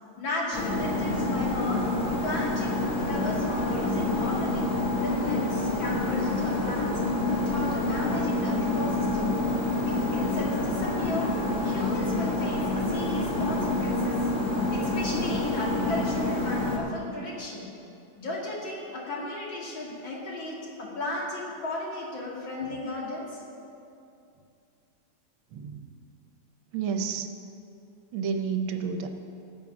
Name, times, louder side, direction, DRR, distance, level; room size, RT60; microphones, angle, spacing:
voice 1, 0.2-1.8 2.2-4.6 5.0-7.0 7.3-9.4 9.8-11.3 11.6-14.2 14.7-17.7 18.2-23.4, left 2 dB, 65° left, -4 dB, 3.1 m, -35 dB
sound 1, 0.5-16.8, left 2 dB, 35° left, 2.2 m, -27 dB
voice 2, 26.7-27.3 28.1-29.1, right 6 dB, 75° right, 6 dB, 1.7 m, -30 dB
17.5 x 7.6 x 6.1 m, 2.6 s
omnidirectional pair, 2.3 m